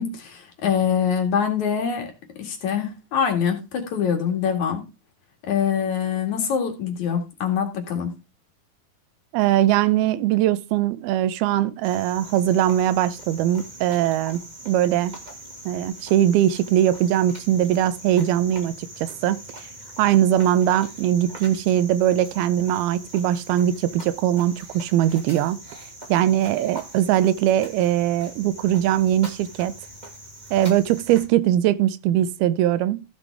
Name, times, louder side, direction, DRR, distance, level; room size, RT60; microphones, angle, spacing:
voice 1, 0.0-2.1 2.4-4.8 5.4-8.1, left 7 dB, 55° left, 3.1 m, -24 dB
voice 2, 9.3-14.4 14.7-15.1 15.7-19.4 20.0-25.6 26.1-29.7 30.5-33.0, right 12 dB, 85° right, 2.6 m, -21 dB
Cricket, 11.8-31.3, right 1 dB, 20° right, 1.3 m, -42 dB
15.0 x 7.1 x 3.5 m
omnidirectional pair, 4.4 m